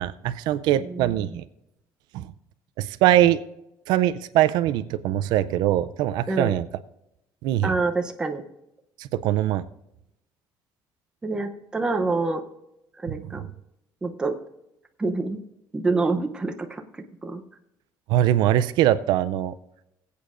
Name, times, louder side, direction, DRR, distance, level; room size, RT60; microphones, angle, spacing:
voice 1, 0.0-1.4 2.1-2.3 2.8-3.4 3.9-6.7 7.4-7.7 9.0-9.6 13.1-13.4 18.1-19.5, right 13 dB, 70° right, 13 dB, 0.4 m, -22 dB
voice 2, 0.8-1.2 6.3-6.5 7.6-8.4 11.2-12.4 13.0-13.5 14.0-14.3 15.0-15.4 15.7-16.8 17.2-17.4, right 3 dB, 10° right, 5 dB, 0.7 m, -26 dB
20.5 x 8.4 x 2.5 m, 0.85 s
cardioid pair, 180°, 8 cm